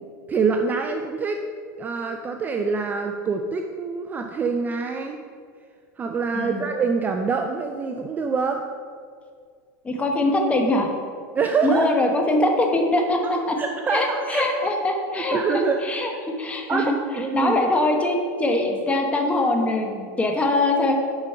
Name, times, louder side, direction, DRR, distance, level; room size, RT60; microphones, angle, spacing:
voice 1, 0.3-1.4 1.8-5.2 6.0-8.6 11.3-11.9 13.2-13.3 13.6-14.5 15.3-15.8 16.7-17.5, right 5 dB, 20° right, 5 dB, 0.4 m, -25 dB
voice 2, 9.8-10.9 11.6-13.6 13.9-15.4 15.8-16.9 17.3-21.0, left 2 dB, 15° left, 2 dB, 1.0 m, -22 dB
7.1 x 5.1 x 5.5 m, 2.1 s
supercardioid pair, 140°, 9 cm